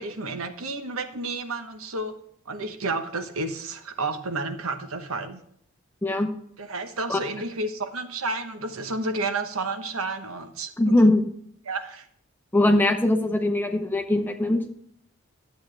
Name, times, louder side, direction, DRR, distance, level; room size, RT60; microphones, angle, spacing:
voice 1, 0.0-2.1 2.5-5.4 6.6-11.0 11.6-12.1, right 3 dB, 85° right, 7 dB, 1.1 m, -31 dB
voice 2, 10.8-11.2 12.5-14.6, left 1 dB, 10° left, 5 dB, 0.7 m, -21 dB
10.5 x 8.2 x 3.3 m, 0.67 s
head